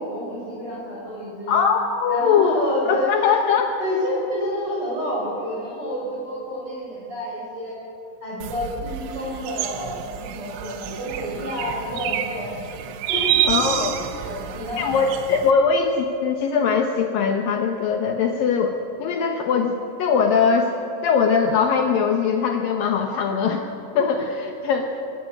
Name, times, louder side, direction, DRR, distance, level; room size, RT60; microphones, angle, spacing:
voice 1, 0.0-1.6 2.1-3.5 3.8-7.8 8.2-12.5 13.1-13.8 14.2-14.8, left 1 dB, 30° right, -6 dB, 6.0 m, -29 dB
voice 2, 1.5-2.6 2.9-3.7 13.5-14.0 14.8-20.7 21.0-23.6 24.0-24.9, left 6 dB, 80° left, 4 dB, 2.0 m, -21 dB
sound 1, 8.4-15.5, right 11 dB, 90° right, 3.6 m, -28 dB
26.0 x 14.0 x 8.8 m, 2.8 s
omnidirectional pair, 5.5 m